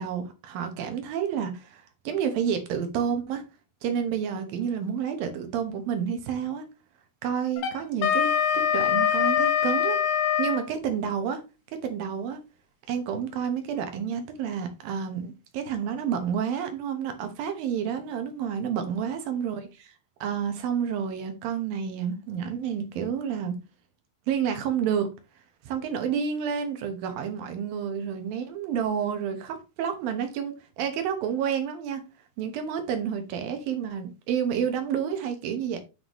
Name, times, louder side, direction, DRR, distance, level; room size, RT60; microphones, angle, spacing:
voice 1, 0.0-3.4 3.8-6.7 7.2-10.0 10.4-11.4 11.7-12.4 12.9-19.9 20.2-23.6 24.3-25.1 25.6-32.0 32.4-35.8, right 8 dB, 65° right, 2.6 m, -29 dB
Wind instrument woodwind instrument, 7.6-10.6, left 9 dB, 75° left, 3.3 m, -23 dB
9.8 x 5.9 x 3.1 m
omnidirectional pair, 5.0 m